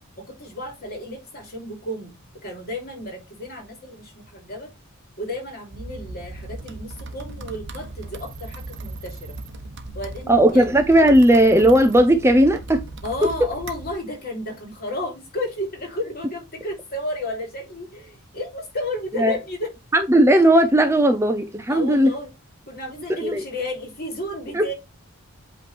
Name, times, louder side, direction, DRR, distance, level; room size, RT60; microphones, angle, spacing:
voice 1, 0.2-2.1 2.4-4.7 5.2-9.4 9.9-10.7 13.0-19.7 21.7-22.3 22.7-24.7, left 1 dB, 45° left, 3.1 m, -32 dB
sound 1, 5.7-14.0, right 2 dB, 55° right, 1.0 m, -37 dB
voice 2, 10.3-12.8 19.2-19.4 19.9-22.1 23.1-23.4 24.5-24.7, right 1 dB, 10° right, 0.6 m, -16 dB
8.3 x 3.1 x 4.3 m
head